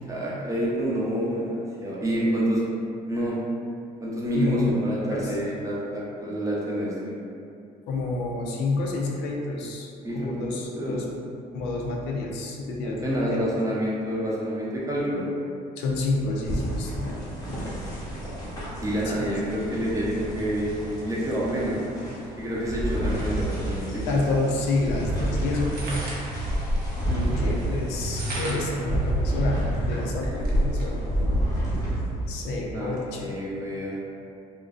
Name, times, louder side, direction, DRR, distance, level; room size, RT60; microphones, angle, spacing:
voice 1, 0.0-2.6 3.1-3.4 4.0-7.1 10.0-10.3 10.7-11.0 12.8-15.2 18.8-21.8 22.4-24.2 27.1-27.2 32.7-34.0, right 1 dB, 20° right, -6 dB, 0.5 m, -28 dB
voice 2, 4.3-4.7 5.1-5.4 7.9-11.0 11.5-13.4 15.8-17.2 19.0-19.3 24.1-25.7 27.3-31.4 32.3-33.4, left 3 dB, 85° left, -2 dB, 0.4 m, -29 dB
sound 1, 16.4-32.4, right 1 dB, 20° left, 0.6 m, -30 dB
sound 2, 24.9-30.0, right 1 dB, 85° right, 1.0 m, -35 dB
sound 3, 25.6-27.0 27.9-28.8 29.4-29.5 29.8-30.9, equal, 65° right, 0.6 m, -28 dB
2.5 x 2.1 x 2.3 m, 2.4 s
cardioid pair, 110°, 17 cm